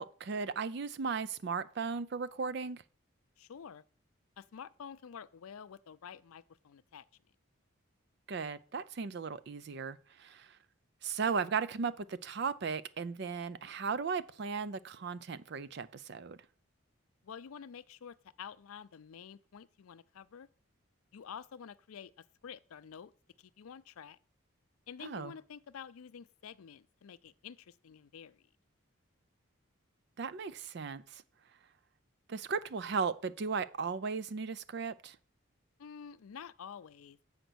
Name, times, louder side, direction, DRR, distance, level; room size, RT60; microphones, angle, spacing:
voice 1, 0.0-2.8 8.3-10.6 11.0-16.4 25.0-25.3 30.2-31.2 32.3-35.2, right 5 dB, 50° right, 0.4 m, -36 dB
voice 2, 3.4-3.8 4.4-7.0 17.2-20.5 21.1-22.1 22.4-23.1 23.4-24.2 24.9-28.4 35.8-37.2, left 7 dB, 90° left, 0.4 m, -49 dB
7.9 x 5.1 x 6.1 m
head